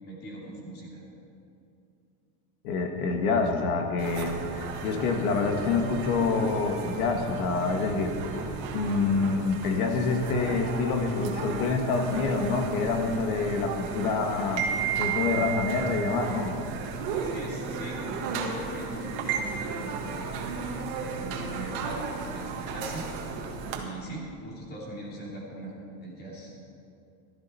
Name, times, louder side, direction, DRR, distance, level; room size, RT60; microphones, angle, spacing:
voice 1, 0.0-1.0 17.1-20.3 20.9-23.1 23.7-26.6, right 1 dB, 20° left, -4 dB, 2.8 m, -40 dB
voice 2, 2.6-8.1 8.7-14.6 14.9-16.6, left 4 dB, 70° left, 4 dB, 2.0 m, -27 dB
sound 1, 4.0-23.8, right 5 dB, 50° right, 1.8 m, -34 dB
15.5 x 13.0 x 4.4 m, 2.6 s
supercardioid pair, 175°, 45 cm